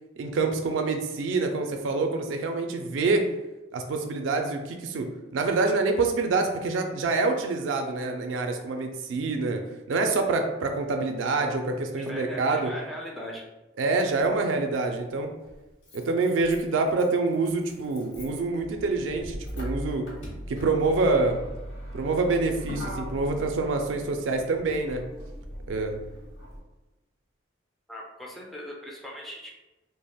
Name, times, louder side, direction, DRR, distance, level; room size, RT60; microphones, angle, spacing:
voice 1, 0.2-3.3 3.7-9.6 9.9-12.7 13.8-15.3 15.9-20.1 20.5-21.4 21.9-25.0 25.7-26.0, right 3 dB, 85° right, 4 dB, 0.3 m, -26 dB
voice 2, 12.0-13.4 27.9-29.5, equal, ahead, -3 dB, 0.4 m, -39 dB
Motor vehicle (road), 14.2-14.3 15.5-26.6, equal, 70° left, 0.9 m, -40 dB
3.4 x 2.0 x 2.2 m, 1.1 s
head